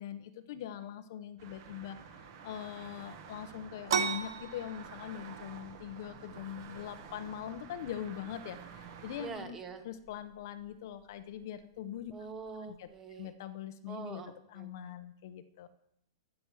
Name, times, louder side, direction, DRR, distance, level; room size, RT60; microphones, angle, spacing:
voice 1, 0.0-9.6 9.8-12.1 12.6-12.9 13.2-14.2 14.5-15.7, left 10 dB, 45° left, 11 dB, 0.8 m, -42 dB
sound 1, 1.4-9.3, right 6 dB, 45° right, 1.6 m, -50 dB
sound 2, 3.9-13.3, right 7 dB, 65° right, 0.9 m, -41 dB
voice 2, 9.2-9.8 12.1-13.3 13.9-14.9, right 5 dB, 15° right, 8 dB, 1.0 m, -45 dB
14.5 x 6.1 x 6.3 m, 0.77 s
hypercardioid pair, 170°, 2 cm